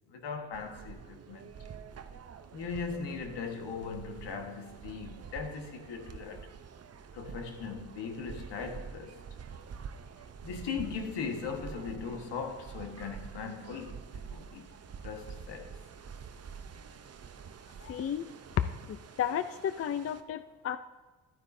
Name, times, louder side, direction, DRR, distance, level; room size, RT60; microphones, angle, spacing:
voice 1, 0.1-1.5 2.5-6.5 7.1-9.2 10.4-14.7 15.0-15.8, left 5 dB, 75° left, 1.5 m, -39 dB
sound 1, 0.5-20.2, right 6 dB, 35° right, 0.7 m, -47 dB
voice 2, 17.8-18.3 18.9-20.8, left 9 dB, 35° left, 0.4 m, -33 dB
13.0 x 9.4 x 2.7 m
cardioid pair, 80°, 42 cm